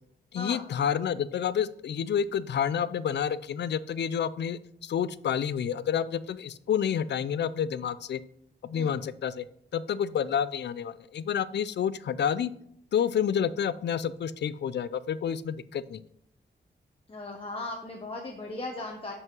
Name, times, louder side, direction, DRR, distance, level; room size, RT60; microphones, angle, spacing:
voice 1, 0.3-8.2 8.6-9.4 9.7-12.5 12.9-16.0, left 8 dB, 75° left, 16 dB, 0.4 m, -29 dB
voice 2, 17.1-19.1, left 2 dB, 30° left, -1 dB, 1.1 m, -37 dB
5.5 x 5.4 x 6.0 m, 0.73 s
wide cardioid pair, 105°, 18 cm